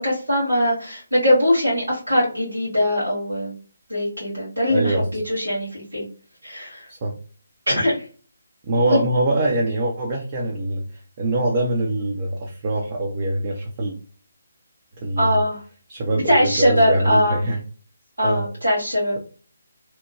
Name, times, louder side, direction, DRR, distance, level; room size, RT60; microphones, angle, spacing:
voice 1, 0.0-3.5 3.9-6.1 6.4-6.9 7.7-8.0 8.9-9.0 15.2-15.6 16.1-17.4 18.2-19.2, equal, 75° right, -6 dB, 1.5 m, -21 dB
voice 2, 4.7-5.1 6.9-7.1 8.6-10.8 11.2-13.9 15.0-15.4 15.9-17.6 18.2-18.5, right 1 dB, 30° right, -1 dB, 0.5 m, -23 dB
2.9 x 2.1 x 2.6 m, 0.39 s
figure-of-eight pair, 145°, 0 cm